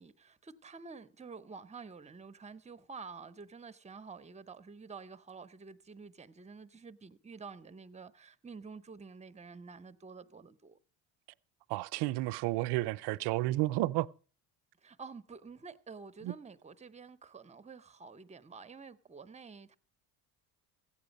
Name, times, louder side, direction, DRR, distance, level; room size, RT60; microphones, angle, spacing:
voice 1, 0.0-10.8 14.8-19.8, right 5 dB, 15° right, 0.7 m, -49 dB
voice 2, 11.7-14.1 16.2-16.3, right 18 dB, 70° right, 0.5 m, -31 dB
14.5 x 8.9 x 5.2 m
supercardioid pair, 90°, 42 cm